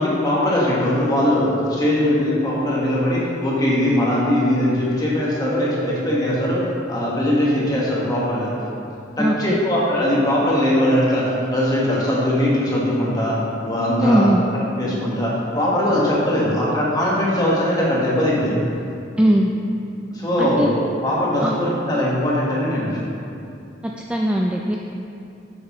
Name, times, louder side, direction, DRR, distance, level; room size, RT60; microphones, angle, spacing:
voice 1, 0.0-8.5 9.2-14.3 14.8-18.6 20.1-20.7 21.0-23.0, left 1 dB, 20° left, -6 dB, 1.4 m, -20 dB
voice 2, 9.2-9.6 14.0-14.4 19.2-19.5 20.4-20.7 21.4-21.5 23.8-24.8, equal, 5° right, -1 dB, 0.3 m, -19 dB
9.6 x 6.5 x 3.0 m, 2.6 s
head